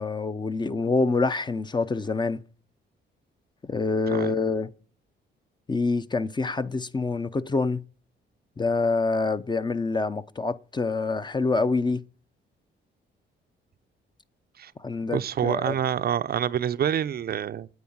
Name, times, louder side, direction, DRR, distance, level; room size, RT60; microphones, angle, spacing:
voice 1, 0.0-2.4 3.6-4.7 5.7-7.8 8.6-12.0 14.8-15.7, left 3 dB, 20° left, 0.7 m, -26 dB
voice 2, 15.1-17.7, right 9 dB, 50° right, 0.6 m, -27 dB
9.5 x 8.5 x 8.6 m
cardioid pair, 90°, 20 cm